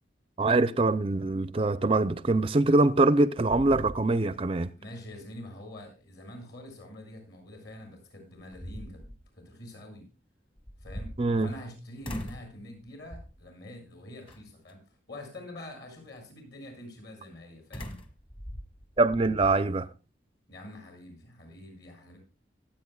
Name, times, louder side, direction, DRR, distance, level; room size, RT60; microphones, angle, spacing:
voice 1, 0.4-4.7 11.2-11.5 19.0-19.9, right 2 dB, 30° right, 0.5 m, -24 dB
sound 1, 2.8-3.2 3.5-4.5 4.9-5.0 7.7-7.8 8.3-9.2 10.6-11.7 12.0-12.5 13.1-13.5 14.3-14.7 17.7-19.6, equal, 30° left, 1.5 m, -41 dB
voice 2, 4.8-10.1 10.8-18.0 20.5-22.2, left 1 dB, 60° left, 7.3 m, -46 dB
25.0 x 8.7 x 2.3 m
head